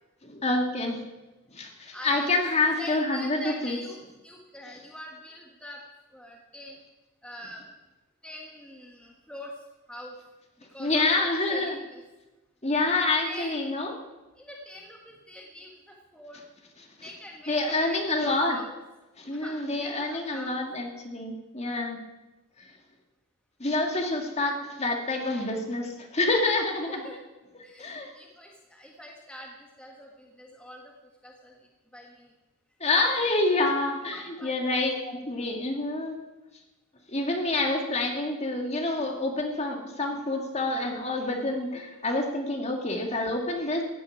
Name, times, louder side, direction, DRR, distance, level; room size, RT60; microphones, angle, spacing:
voice 1, 0.2-1.0 1.5-3.8 4.7-4.8 10.8-11.8 12.6-13.9 16.8-17.1 17.5-18.6 19.2-22.0 23.6-27.0 27.8-28.1 32.8-36.2 37.1-43.8, left 2 dB, 30° left, 3 dB, 2.2 m, -27 dB
voice 2, 1.9-2.4 2.8-5.8 6.1-6.8 7.2-7.6 8.2-9.5 9.9-10.1 10.7-12.0 13.2-13.6 14.4-16.4 17.0-18.7 19.4-20.6 27.0-27.2 27.6-30.8 31.2-31.5 31.9-32.3 34.1-34.9, equal, 5° left, -1 dB, 1.5 m, -44 dB
15.5 x 8.3 x 9.5 m, 1.1 s
head